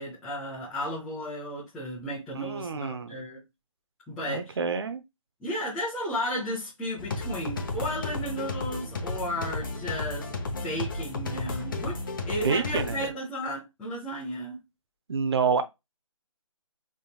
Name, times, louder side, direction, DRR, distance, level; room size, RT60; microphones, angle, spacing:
voice 1, 0.0-3.4 4.1-4.6 5.4-12.0 12.3-14.6, equal, 5° left, 0.6 m, -34 dB
voice 2, 2.3-3.2 4.3-5.0 12.4-13.1 15.1-15.6, right 5 dB, 50° right, 0.6 m, -28 dB
sound 1, 7.0-13.1, left 3 dB, 40° left, 0.8 m, -33 dB
4.1 x 3.6 x 2.3 m
figure-of-eight pair, 165°, 18 cm